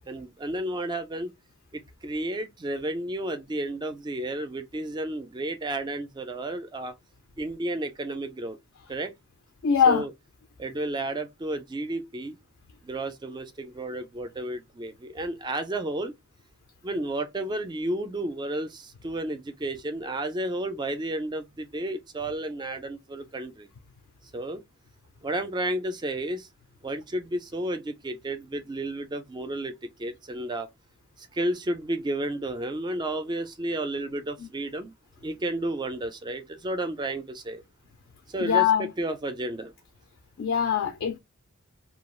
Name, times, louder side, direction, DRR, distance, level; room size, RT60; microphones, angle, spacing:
voice 1, 0.0-1.3 1.7-6.9 7.4-8.6 8.9-9.1 9.9-10.1 10.6-12.4 12.8-16.1 16.8-23.7 24.3-24.6 25.2-26.5 26.8-30.7 31.2-34.9 35.2-37.6 38.3-39.7, right 1 dB, 20° right, 0.3 m, -32 dB
voice 2, 9.6-10.0 38.4-38.9 40.4-41.2, left 7 dB, 60° left, 0.3 m, -22 dB
2.3 x 2.3 x 3.0 m
head